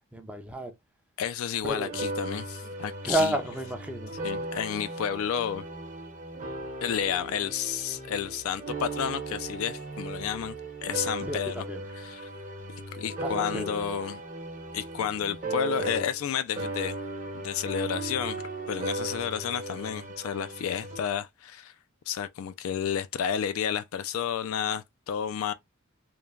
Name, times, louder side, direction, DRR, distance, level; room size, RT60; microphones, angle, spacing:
voice 1, 0.1-0.7 1.6-1.9 3.0-4.2 11.2-11.8 13.2-13.7, right 1 dB, 5° right, 0.4 m, -31 dB
voice 2, 1.2-3.4 4.2-5.6 6.8-10.6 10.8-11.6 12.0-12.2 12.9-14.2 14.7-17.0 17.3-18.4 18.7-21.7 22.1-25.5, left 8 dB, 70° left, 0.3 m, -31 dB
sound 1, 1.9-16.3 16.6-21.0, right 2 dB, 40° right, 0.8 m, -37 dB
3.1 x 2.1 x 2.3 m
head